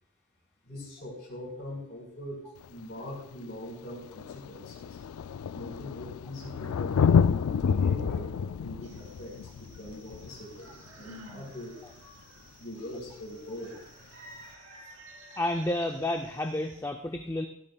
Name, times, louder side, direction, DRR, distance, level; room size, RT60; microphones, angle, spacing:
voice 1, 0.6-2.4 2.7-5.0 5.5-11.7 12.6-13.8, left 1 dB, 55° left, -3 dB, 4.9 m, -42 dB
Thunder, 2.6-2.7 3.7-3.8 4.0-11.3 13.0-13.1, left 6 dB, 85° left, 0.4 m, -29 dB
sound 1, 8.8-16.8, right 2 dB, 60° right, 4.0 m, -54 dB
Sigh, 10.9-11.5, left 1 dB, 80° right, 0.9 m, -47 dB
voice 2, 15.4-17.5, left 1 dB, 15° left, 4 dB, 0.4 m, -30 dB
16.0 x 12.5 x 2.3 m, 0.78 s
head